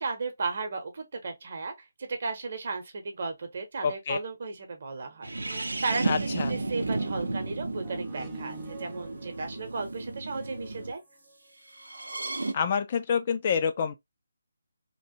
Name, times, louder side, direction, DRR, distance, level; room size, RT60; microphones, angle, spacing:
voice 1, 0.0-1.7 2.0-6.2 6.5-11.0, right 4 dB, 50° right, 0.9 m, -35 dB
voice 2, 3.8-4.2 6.0-6.6 12.5-13.9, left 6 dB, 35° left, 0.4 m, -27 dB
sound 1, 5.2-10.9 11.8-12.5, right 2 dB, 70° right, 0.6 m, -33 dB
sound 2, 5.4-11.3 12.0-12.1, right 3 dB, 15° right, 0.6 m, -50 dB
3.0 x 2.4 x 2.8 m
figure-of-eight pair, 145°, 0 cm